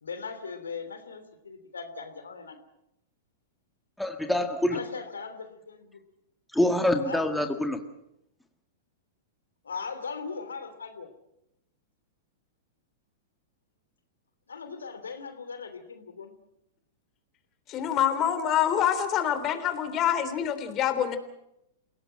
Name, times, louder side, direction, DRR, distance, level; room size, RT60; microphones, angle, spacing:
voice 1, 0.0-2.6 4.7-6.0 7.0-7.3 9.6-11.1 14.5-16.3, left 5 dB, 80° left, 9 dB, 3.0 m, -39 dB
voice 2, 4.0-4.8 6.5-7.8, left 1 dB, 5° left, 5 dB, 1.9 m, -25 dB
voice 3, 17.7-21.2, left 9 dB, 35° left, 10 dB, 3.5 m, -26 dB
28.0 x 17.5 x 7.7 m, 0.85 s
hypercardioid pair, 100°, 0 cm